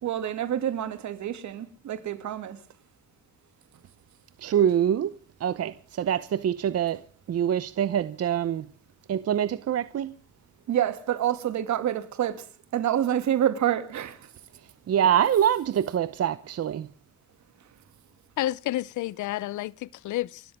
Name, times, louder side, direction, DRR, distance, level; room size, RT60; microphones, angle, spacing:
voice 1, 0.0-2.6 10.7-12.5 12.7-14.3, right 10 dB, 70° right, 2.5 m, -27 dB
voice 2, 4.4-5.1 5.4-7.0 7.3-8.7 9.1-10.1 14.9-16.9, right 9 dB, 55° right, 0.8 m, -25 dB
voice 3, 18.4-20.4, left 15 dB, 80° left, 0.7 m, -30 dB
30.0 x 13.0 x 3.6 m
cardioid pair, 90°, 30 cm